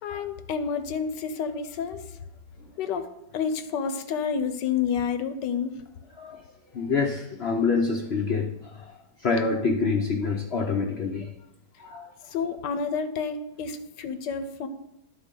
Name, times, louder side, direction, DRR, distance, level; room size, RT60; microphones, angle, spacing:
voice 1, 0.0-2.0 2.8-5.8 12.3-14.7, left 6 dB, 80° left, 10 dB, 1.3 m, -29 dB
voice 2, 6.7-11.3 11.8-12.2, left 4 dB, 60° left, 2 dB, 0.6 m, -27 dB
11.0 x 3.9 x 5.3 m, 0.88 s
omnidirectional pair, 1.9 m